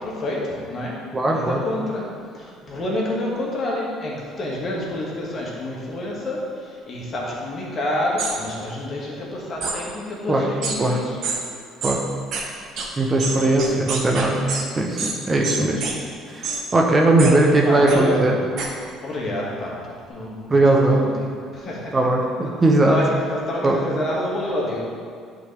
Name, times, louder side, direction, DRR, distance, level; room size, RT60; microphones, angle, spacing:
voice 1, 0.0-1.0 1.3-11.2 13.2-13.5 17.2-17.3 17.6-18.3 19.0-21.9 22.9-24.8, left 1 dB, 40° left, -4 dB, 1.8 m, -28 dB
voice 2, 1.1-1.6 10.3-10.4 10.8-11.0 11.8-12.0 13.0-14.4 14.7-15.8 16.3-18.4 20.5-21.0 21.9-23.0 23.6-23.8, right 2 dB, 25° right, 0 dB, 0.9 m, -19 dB
sound 1, 8.2-8.3 9.6-9.8 10.6-10.8 11.2-11.4 11.8-12.0 12.3-12.4 12.8-12.9 13.2-14.6 15.0-15.1 15.4-15.9 16.4-16.6 17.2-17.3 17.9-18.0 18.6-18.7, right 4 dB, 55° right, 1.1 m, -26 dB
11.0 x 4.0 x 3.4 m, 2.2 s
figure-of-eight pair, 55°, 0 cm